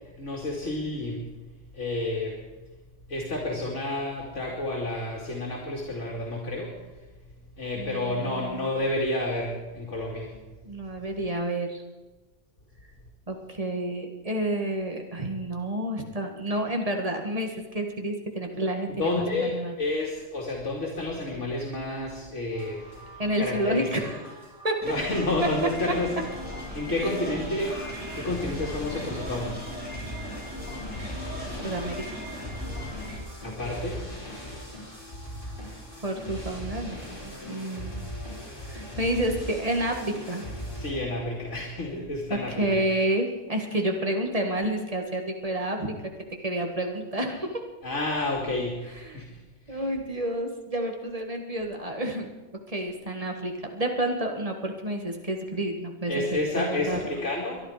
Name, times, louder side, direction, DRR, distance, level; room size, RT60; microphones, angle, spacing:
voice 1, 0.2-1.2 1.7-2.4 3.1-6.7 7.6-10.4 19.0-22.8 23.1-23.9 24.8-26.1 26.7-27.7 28.1-29.6 33.4-34.0 40.8-42.8 47.8-48.8 49.1-49.3 49.7-49.8 56.1-57.6, left 2 dB, 75° left, -2 dB, 2.7 m, -30 dB
voice 2, 7.7-8.7 10.7-11.8 13.3-19.7 23.2-24.2 24.6-24.8 31.6-32.0 36.0-38.1 38.7-40.5 42.3-45.9 46.3-47.6 49.1-49.2 49.7-52.3 52.7-57.0, right 1 dB, 30° right, 3 dB, 1.9 m, -30 dB
sound 1, 22.5-40.9, equal, 45° left, 5.9 m, -40 dB
sound 2, 24.8-33.2, left 1 dB, 5° right, 3.9 m, -38 dB
23.0 x 11.0 x 5.0 m, 1.2 s
omnidirectional pair, 1.3 m